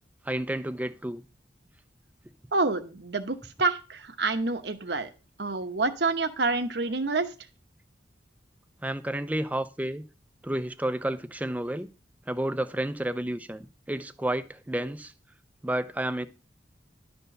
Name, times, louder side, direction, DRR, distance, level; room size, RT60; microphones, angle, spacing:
voice 1, 0.3-1.2 8.8-10.0 10.4-11.9 12.3-15.1 15.6-16.3, right 1 dB, 10° right, 0.5 m, -31 dB
voice 2, 2.5-5.1 5.4-7.3, right 3 dB, 65° right, 1.1 m, -27 dB
11.5 x 4.5 x 6.6 m
head